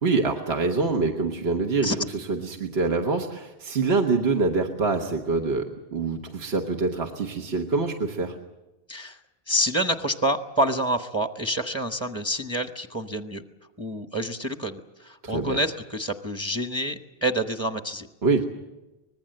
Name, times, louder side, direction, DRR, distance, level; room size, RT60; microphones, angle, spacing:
voice 1, 0.0-8.3 15.2-15.6 18.2-18.5, right 3 dB, 70° right, 3 dB, 1.6 m, -25 dB
voice 2, 8.9-9.2 9.5-13.4 13.8-18.1, right 1 dB, 15° right, 6 dB, 1.0 m, -27 dB
24.5 x 20.5 x 7.8 m, 1.1 s
omnidirectional pair, 1.1 m